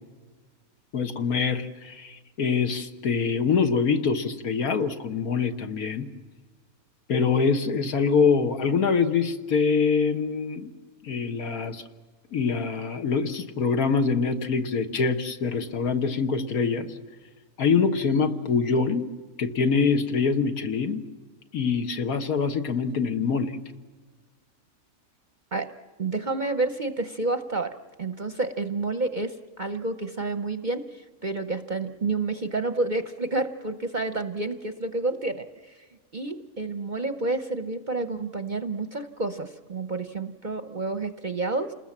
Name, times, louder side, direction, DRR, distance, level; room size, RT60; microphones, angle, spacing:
voice 1, 0.9-6.1 7.1-10.7 11.0-11.8 12.3-16.9 17.6-19.0 19.4-21.0 21.5-23.5, left 5 dB, 70° left, 7 dB, 1.8 m, -24 dB
voice 2, 26.0-35.8 36.1-41.7, right 3 dB, 40° right, 9 dB, 0.8 m, -29 dB
28.5 x 20.5 x 7.3 m, 1.4 s
omnidirectional pair, 1.6 m